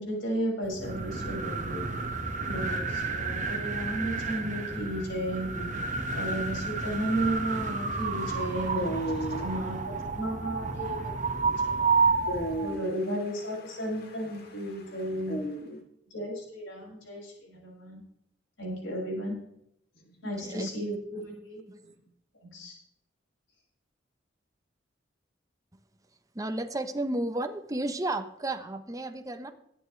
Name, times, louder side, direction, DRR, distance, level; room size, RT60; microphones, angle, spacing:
voice 1, 0.0-1.8 2.5-5.5 6.1-8.8 9.4-12.0 12.6-15.4 16.1-18.0 18.6-19.3 20.2-21.6 22.4-22.8, right 1 dB, 85° left, -3 dB, 6.3 m, -34 dB
sound 1, 0.6-12.8, right 4 dB, 40° right, 1.5 m, -31 dB
voice 2, 8.7-9.5 12.2-12.9 14.7-15.0 15.3-15.8, right 1 dB, 55° left, 1 dB, 3.3 m, -34 dB
voice 3, 20.2-21.0 21.7-21.9 26.3-29.5, right 1 dB, 20° right, 8 dB, 1.0 m, -33 dB
21.0 x 9.2 x 3.3 m, 0.76 s
head